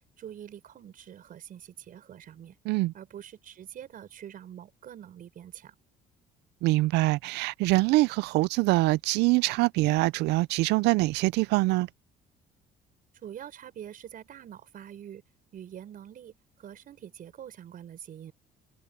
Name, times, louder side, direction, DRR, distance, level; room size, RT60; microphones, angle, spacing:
voice 1, 0.2-2.6 2.9-5.8 13.2-15.2 15.5-18.3, right 10 dB, 55° right, 5.7 m, -45 dB
voice 2, 6.6-11.9, right 20 dB, 85° right, 0.4 m, -24 dB
cardioid pair, 110°, 17 cm